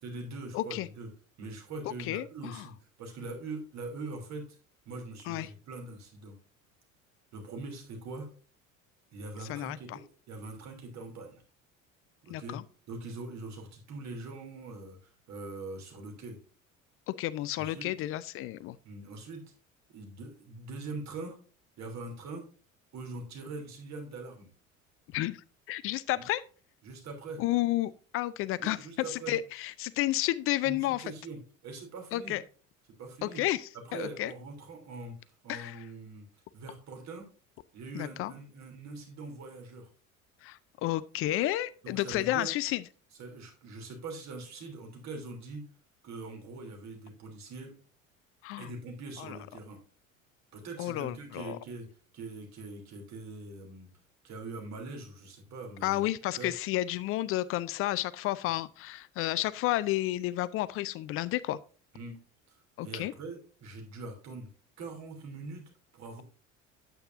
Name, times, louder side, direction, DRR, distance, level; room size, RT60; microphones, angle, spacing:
voice 1, 0.0-1.1 1.4-4.4 4.8-6.3 7.3-8.3 9.1-11.4 12.2-12.6 12.9-16.4 17.6-17.9 18.8-19.4 19.9-21.4 21.8-22.5 22.9-24.5 26.1-26.2 26.8-27.4 28.6-29.3 30.6-32.3 33.0-33.4 33.9-36.3 36.5-37.3 37.7-39.9 41.8-42.5 43.2-45.6 46.0-47.7 48.6-49.8 50.5-51.9 52.1-53.9 54.2-56.0 56.4-56.5 61.9-62.2 62.5-64.5 64.8-66.2, right 3 dB, 40° right, 3.1 m, -42 dB
voice 2, 0.5-0.9 2.0-2.6 5.3-5.5 9.5-10.0 12.3-12.6 17.1-18.8 25.1-26.4 27.4-28.8 29.1-31.0 32.1-32.4 33.2-34.3 35.5-35.8 37.9-38.3 40.4-42.8 48.4-48.7 49.2-49.4 50.8-51.6 55.8-61.6 62.8-63.1, left 15 dB, 35° left, 0.4 m, -31 dB
9.1 x 8.8 x 2.6 m
figure-of-eight pair, 60°, 40 cm